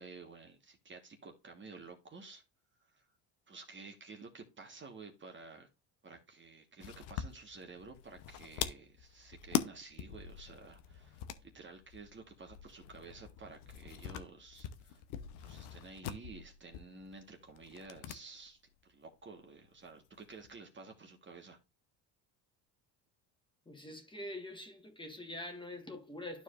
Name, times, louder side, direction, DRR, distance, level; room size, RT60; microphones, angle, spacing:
voice 1, 0.0-2.4 2.9-3.1 3.5-5.7 6.0-11.2 11.5-15.0 15.4-18.6 18.9-21.6, right 4 dB, 30° right, 1.4 m, -52 dB
sound 1, 6.8-18.2 18.5-18.6 19.8-20.5, left 11 dB, 85° left, 0.9 m, -43 dB
voice 2, 23.6-26.4, left 1 dB, 10° left, 1.5 m, -45 dB
12.0 x 4.7 x 2.5 m
cardioid pair, 115°, 40 cm